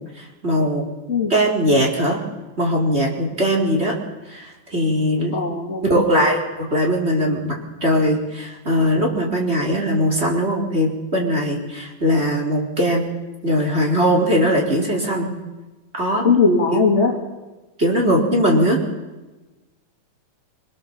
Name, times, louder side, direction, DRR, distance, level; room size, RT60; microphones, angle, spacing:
voice 1, 0.1-0.9 1.3-2.2 2.6-3.9 4.3-5.3 5.8-13.0 13.4-15.3 15.9-16.3 16.7-16.9 17.8-18.8, equal, 20° right, -1 dB, 4.4 m, -20 dB
voice 2, 5.3-5.9 16.2-17.2, left 4 dB, 25° left, 0 dB, 2.1 m, -18 dB
27.5 x 20.5 x 7.3 m, 1.1 s
omnidirectional pair, 3.7 m